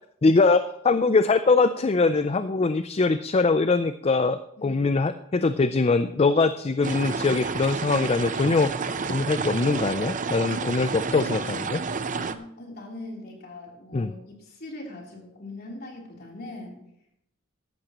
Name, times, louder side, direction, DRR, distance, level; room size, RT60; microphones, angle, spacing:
voice 1, 0.2-8.7 9.1-11.8 13.9-14.1, left 3 dB, 30° left, 11 dB, 0.4 m, -22 dB
sound 1, 6.8-12.4, right 4 dB, 40° right, 0.6 m, -30 dB
voice 2, 12.0-16.8, left 2 dB, 45° left, -1 dB, 3.4 m, -41 dB
14.5 x 11.5 x 3.0 m, 0.77 s
head